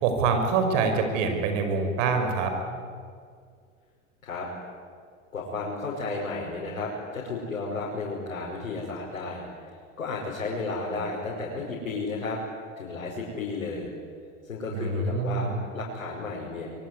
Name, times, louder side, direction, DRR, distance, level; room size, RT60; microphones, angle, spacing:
voice 1, 0.0-2.8 14.7-15.6, right 4 dB, 65° right, 6 dB, 5.6 m, -25 dB
voice 2, 5.3-9.4 10.0-12.4 12.8-13.9 14.4-15.5 15.7-16.7, left 3 dB, 90° left, -4 dB, 6.0 m, -33 dB
25.0 x 23.5 x 9.5 m, 2.1 s
hypercardioid pair, 90°, 40 cm